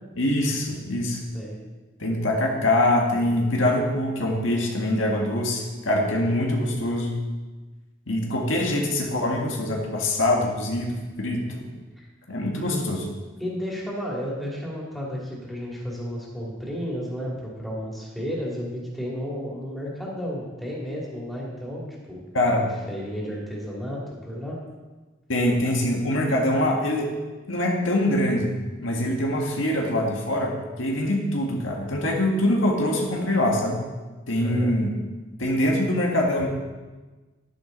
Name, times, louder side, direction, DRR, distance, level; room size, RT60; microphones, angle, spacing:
voice 1, 0.2-1.2 2.0-7.2 8.1-11.7 12.3-13.0 22.3-22.7 25.3-27.1 27.5-28.5 28.8-33.8 34.3-34.9 35.4-36.5, left 1 dB, 90° left, 0 dB, 1.8 m, -24 dB
voice 2, 13.4-22.2 22.6-24.6 34.4-34.8, equal, ahead, -5 dB, 2.7 m, -32 dB
11.0 x 10.5 x 4.0 m, 1.2 s
head